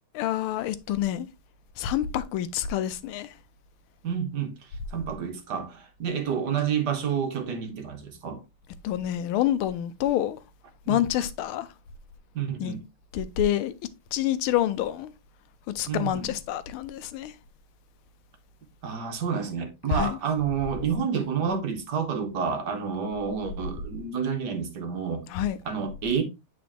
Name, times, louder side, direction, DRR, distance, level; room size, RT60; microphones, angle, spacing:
voice 1, 0.1-1.3 1.8-3.3 8.8-10.4 10.9-11.7 12.6-12.8 13.1-13.7 14.1-15.1 15.7-17.3 19.9-20.2 25.3-25.6, left 11 dB, 90° left, 1.5 m, -27 dB
voice 2, 4.0-4.6 4.9-8.4 10.9-11.1 12.3-12.9 15.9-16.3 18.8-25.2 25.6-26.2, right 7 dB, 60° right, 1.4 m, -29 dB
8.6 x 4.1 x 2.9 m
omnidirectional pair, 2.3 m